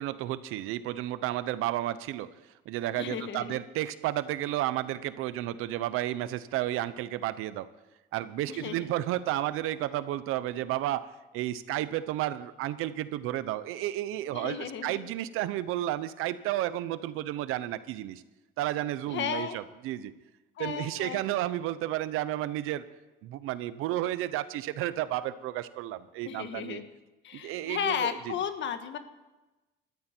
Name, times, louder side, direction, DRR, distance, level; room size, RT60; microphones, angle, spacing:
voice 1, 0.0-2.3 2.7-7.7 8.1-11.1 11.3-18.2 18.6-20.1 20.6-22.8 23.2-26.8 27.3-28.3, right 14 dB, 85° right, 14 dB, 0.9 m, -32 dB
voice 2, 3.0-3.6 8.5-8.8 14.3-15.1 19.1-19.6 20.6-21.2 26.2-26.9 27.2-29.0, left 8 dB, 60° left, 9 dB, 1.5 m, -34 dB
20.5 x 13.5 x 4.5 m, 1.1 s
cardioid pair, 105°, 21 cm